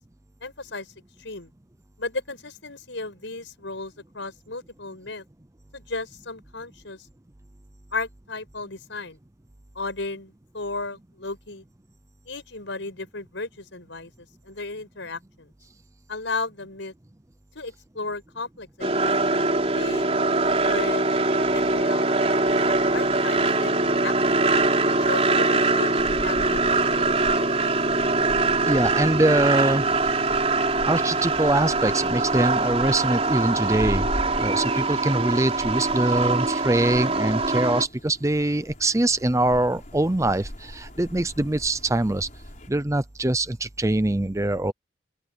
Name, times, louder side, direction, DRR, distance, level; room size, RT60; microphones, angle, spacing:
voice 1, 0.4-0.9 1.2-1.5 2.0-5.2 5.7-7.0 7.9-9.2 9.8-11.6 12.3-14.1 14.5-15.5 16.1-16.9 17.6-19.5 19.7-20.1 20.6-21.1 21.5-22.3 22.8-24.6 25.1-27.1 27.3-28.0, left 3 dB, 70° left, 5.2 m, -35 dB
sound 1, 18.8-37.9, right 3 dB, 30° right, 4.1 m, -23 dB
sound 2, 26.0-42.7, equal, 40° left, 5.9 m, -40 dB
voice 2, 28.7-29.8 30.9-34.1 34.3-42.3 42.7-44.7, right 1 dB, 15° right, 0.6 m, -23 dB
open air
head